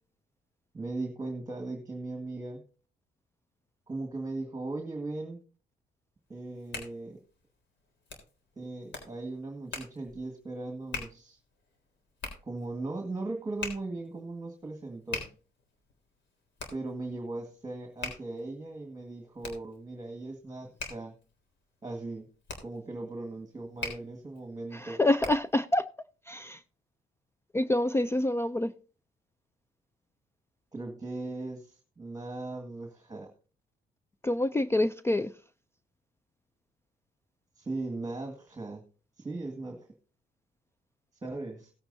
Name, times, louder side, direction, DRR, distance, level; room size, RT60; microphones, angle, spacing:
voice 1, 0.7-2.6 3.9-5.4 6.3-7.2 8.6-11.4 12.4-15.2 16.7-21.1 21.8-22.3 22.6-25.0 30.7-33.3 37.6-38.8 39.2-39.9 41.2-41.7, right 2 dB, 20° right, 1.8 m, -38 dB
Hands, 6.3-25.6, left 3 dB, 65° left, 3.6 m, -44 dB
voice 2, 24.7-25.9 26.3-26.6 27.5-28.7 34.2-35.3, left 1 dB, 10° left, 0.4 m, -27 dB
17.0 x 8.8 x 2.7 m
cardioid pair, 90°, 20 cm